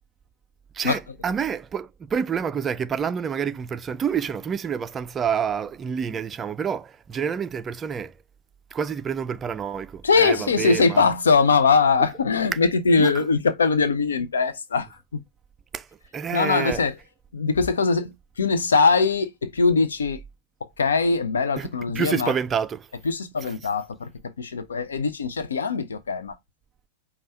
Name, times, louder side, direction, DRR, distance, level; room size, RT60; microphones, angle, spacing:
voice 1, 0.7-8.1 8.7-11.1 13.0-13.3 15.7-15.9 16.1-16.8 21.6-21.7 21.9-22.9 23.4-23.5, right 7 dB, 20° right, 0.3 m, -28 dB
voice 2, 10.0-15.2 16.3-16.9 17.3-20.2 20.8-22.3 23.0-26.4, left 4 dB, 70° left, 0.5 m, -22 dB
5.3 x 2.3 x 4.3 m
figure-of-eight pair, 90°, 0 cm